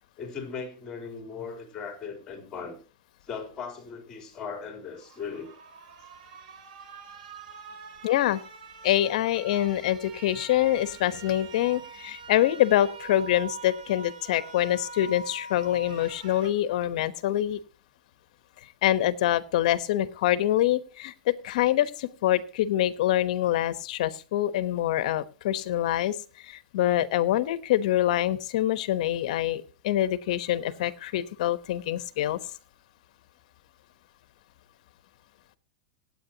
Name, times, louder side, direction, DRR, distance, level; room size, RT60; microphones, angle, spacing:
voice 1, 0.2-2.8 3.3-5.5, left 5 dB, 15° left, 3.4 m, -38 dB
sound 1, 4.9-16.5, right 4 dB, 70° right, 2.4 m, -44 dB
voice 2, 8.0-8.4 8.8-17.6 18.8-26.2 26.4-32.4, left 13 dB, 60° left, 1.1 m, -25 dB
26.0 x 8.7 x 2.9 m
supercardioid pair, 155°, 4 cm